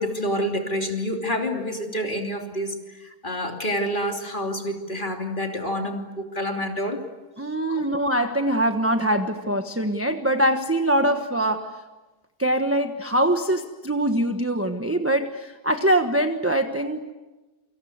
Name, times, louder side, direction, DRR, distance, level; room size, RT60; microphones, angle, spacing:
voice 1, 0.0-7.0 7.7-7.9, equal, 30° left, 3 dB, 3.2 m, -28 dB
voice 2, 7.4-11.8 12.4-17.1, right 1 dB, 10° right, 6 dB, 1.1 m, -23 dB
29.0 x 26.0 x 8.0 m, 1.1 s
omnidirectional pair, 1.7 m